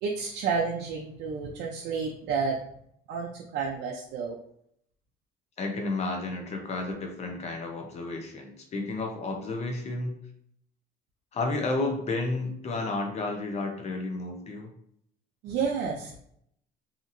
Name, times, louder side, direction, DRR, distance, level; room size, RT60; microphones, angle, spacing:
voice 1, 0.0-2.5 3.1-4.4 15.4-16.2, right 5 dB, 80° right, -1 dB, 0.5 m, -30 dB
voice 2, 5.6-10.2 11.3-14.7, left 2 dB, 40° left, 3 dB, 0.7 m, -31 dB
2.8 x 2.5 x 2.6 m, 0.69 s
cardioid pair, 110°, 17 cm